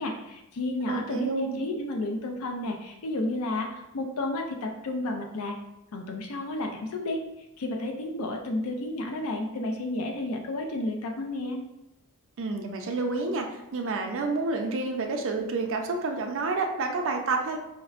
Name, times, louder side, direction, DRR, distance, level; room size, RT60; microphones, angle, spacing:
voice 1, 0.0-5.6 5.9-7.2 7.6-11.6, left 2 dB, 75° left, 3 dB, 0.5 m, -32 dB
voice 2, 0.9-1.6 12.4-17.6, right 3 dB, 60° right, 3 dB, 0.5 m, -29 dB
5.0 x 2.0 x 2.4 m, 0.90 s
head